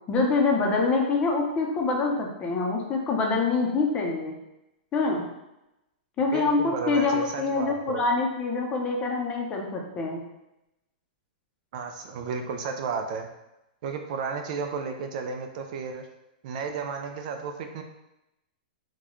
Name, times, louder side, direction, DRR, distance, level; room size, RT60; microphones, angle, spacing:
voice 1, 0.1-4.3 4.9-5.2 6.2-10.2, left 3 dB, 20° left, 0 dB, 0.6 m, -25 dB
voice 2, 6.3-8.1 11.7-13.3 13.8-16.1 16.4-17.8, right 5 dB, 50° right, 5 dB, 0.4 m, -33 dB
3.9 x 2.2 x 3.0 m, 0.91 s
hypercardioid pair, 150°, 5 cm